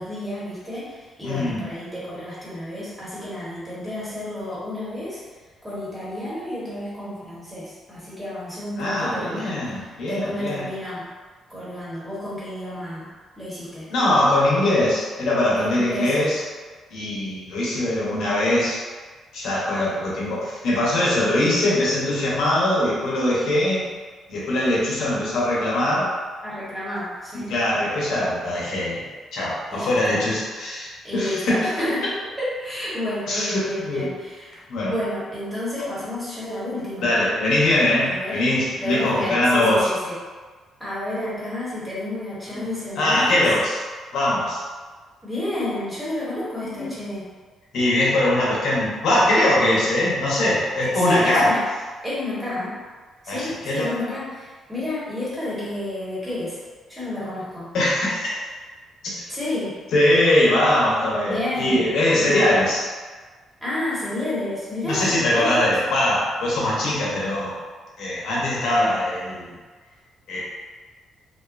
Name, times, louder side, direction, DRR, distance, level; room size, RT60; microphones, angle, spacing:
voice 1, 0.0-5.2 5.6-11.1 11.5-13.1 13.4-13.9 15.6-16.1 26.4-27.5 29.7-30.2 31.0-32.0 32.4-34.6 34.9-37.1 38.0-38.4 38.8-40.2 40.8-43.4 45.2-47.3 50.8-51.6 52.0-52.8 53.2-56.6 56.9-57.7 59.3-59.8 61.2-61.9 62.1-62.4 63.6-65.8, left 1 dB, 5° right, -9 dB, 1.2 m, -30 dB
voice 2, 1.2-1.7 8.8-10.7 13.9-16.4 16.9-18.8 19.3-23.8 24.3-26.1 27.3-29.0 29.3-31.7 33.3-34.1 34.7-34.9 37.0-39.9 42.5-42.6 43.0-43.8 44.1-44.6 46.8-46.9 47.7-51.5 53.3-53.9 57.7-58.4 59.0-59.2 59.9-62.9 64.8-67.6 68.0-69.5 70.3-70.4, left 1 dB, 75° left, -6 dB, 0.8 m, -21 dB
2.5 x 2.3 x 2.5 m, 1.4 s
cardioid pair, 90°, 0 cm